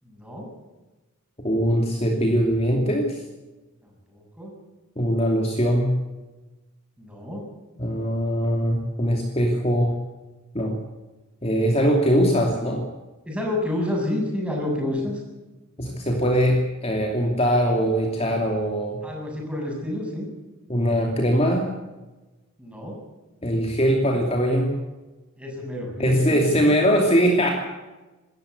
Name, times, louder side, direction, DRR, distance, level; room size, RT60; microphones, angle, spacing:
voice 1, 0.0-0.5 3.8-4.5 7.0-7.5 13.3-15.2 19.0-20.3 22.6-23.0 25.4-26.4, left 1 dB, 5° right, -1 dB, 7.5 m, -29 dB
voice 2, 1.4-3.2 5.0-5.9 7.8-10.0 10.5-10.8 11.4-12.9 15.8-19.0 20.7-21.6 23.4-24.7 26.0-27.5, equal, 30° left, 1 dB, 2.8 m, -21 dB
26.5 x 14.0 x 8.1 m, 1.1 s
head